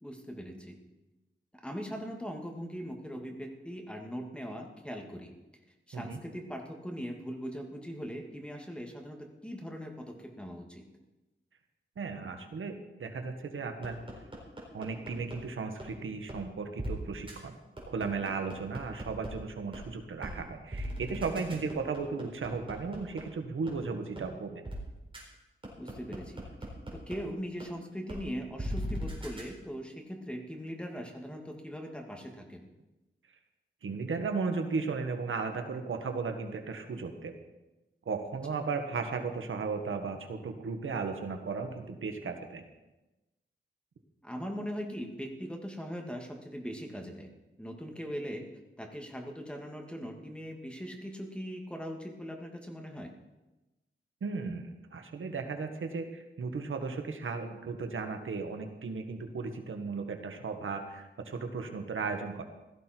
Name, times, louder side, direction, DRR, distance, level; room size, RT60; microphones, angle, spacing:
voice 1, 0.0-0.8 1.6-5.3 5.9-10.8 21.6-21.7 25.8-26.4 26.9-32.7 44.2-47.3 47.6-48.4 48.8-53.1, equal, 5° left, 2 dB, 2.3 m, -40 dB
voice 2, 12.0-14.0 14.7-17.6 17.9-24.6 33.8-37.3 38.0-42.6 54.2-62.4, right 4 dB, 80° right, 6 dB, 1.5 m, -35 dB
sound 1, 13.8-15.4 15.8-15.9 16.3-16.4 16.8-16.9 17.3-17.4 17.8-19.3 19.7-19.8 20.2-20.3 20.7-23.2 23.7-23.8 24.2-24.3 24.6-24.8 25.1-25.2 25.6-27.2 27.6-27.7 28.1-28.2 28.6-29.4, equal, 25° right, 4.4 m, -38 dB
16.5 x 13.5 x 4.6 m, 1.0 s
wide cardioid pair, 115°, 20 cm